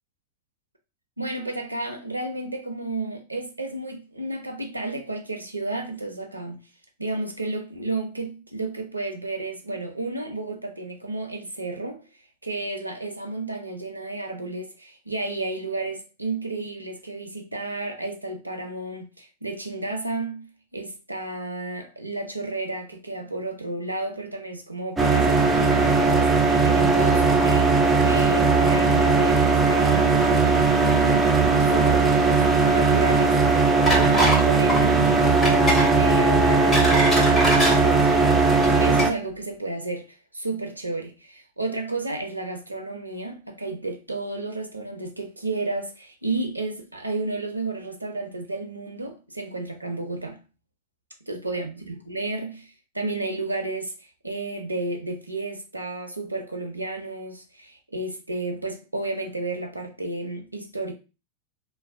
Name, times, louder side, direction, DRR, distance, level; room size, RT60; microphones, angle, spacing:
voice 1, 1.2-6.6 7.0-12.0 12.4-20.5 20.7-38.4 38.8-50.4 51.3-60.9, right 2 dB, 85° right, 0.4 m, -32 dB
sound 1, 25.0-39.1, right 4 dB, 10° right, 0.4 m, -19 dB
sound 2, 33.9-34.4 34.7-34.9 35.4-35.9 36.4-37.8 38.5-38.7 39.0-39.1, right 1 dB, 20° left, 1.3 m, -23 dB
2.5 x 2.1 x 2.4 m
figure-of-eight pair, 90°, 0 cm